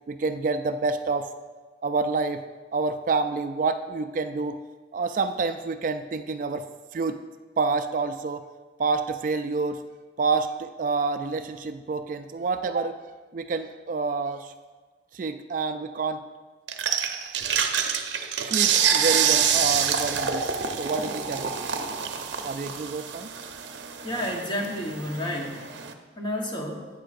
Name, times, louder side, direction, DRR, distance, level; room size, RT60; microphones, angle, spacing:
voice 1, 0.1-1.3 1.8-2.4 2.7-4.6 4.9-6.7 6.9-7.2 7.6-8.5 8.8-9.8 10.2-13.0 13.3-14.5 15.1-16.2 18.5-21.8 22.4-23.3, right 4 dB, 45° right, 9 dB, 0.3 m, -28 dB
sound 1, 16.7-25.9, right 7 dB, 80° right, 0.6 m, -27 dB
voice 2, 24.0-25.7 26.2-26.9, left 1 dB, 25° left, 1 dB, 1.1 m, -31 dB
11.5 x 8.4 x 2.5 m, 1.4 s
head